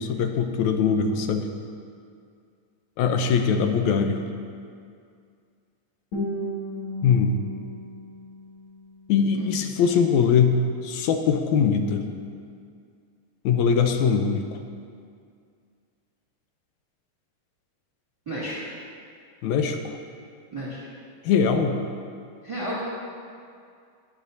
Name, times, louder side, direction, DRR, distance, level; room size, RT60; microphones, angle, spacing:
voice 1, 0.0-1.5 3.0-4.2 7.0-7.4 9.1-10.6 10.8-12.1 13.4-14.5 19.4-19.9 21.3-21.8, left 6 dB, 80° left, 5 dB, 1.9 m, -22 dB
Guitar, 6.1-9.1, equal, 45° left, 2.7 m, -34 dB
voice 2, 18.3-18.6 20.5-20.9 22.4-22.8, right 1 dB, 10° right, -8 dB, 2.1 m, -32 dB
20.5 x 8.3 x 2.7 m, 2.3 s
omnidirectional pair, 3.5 m